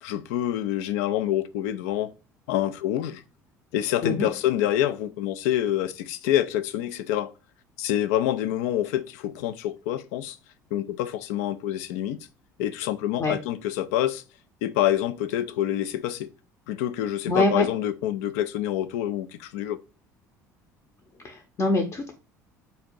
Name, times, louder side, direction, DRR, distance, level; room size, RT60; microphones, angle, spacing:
voice 1, 0.0-2.1 2.5-3.2 3.7-7.3 7.8-10.4 10.7-12.3 12.6-14.2 14.6-16.3 16.7-19.8, left 12 dB, 65° left, 0.4 m, -27 dB
voice 2, 17.3-17.7 21.2-22.1, left 2 dB, 35° left, 0.7 m, -24 dB
4.1 x 2.7 x 4.5 m
figure-of-eight pair, 60°, 9 cm